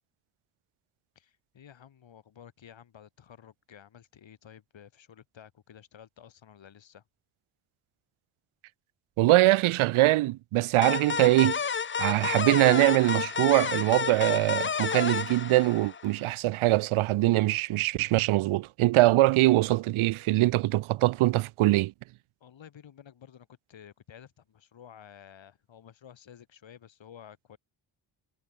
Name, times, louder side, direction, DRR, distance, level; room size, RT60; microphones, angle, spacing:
voice 1, 1.2-7.0 22.4-27.6, left 9 dB, 65° left, 3.8 m, -52 dB
voice 2, 9.2-11.6 12.0-21.9, right 17 dB, 75° right, 0.6 m, -23 dB
sound 1, 10.8-16.2, left 6 dB, 25° left, 0.6 m, -30 dB
cardioid pair, 90°, 49 cm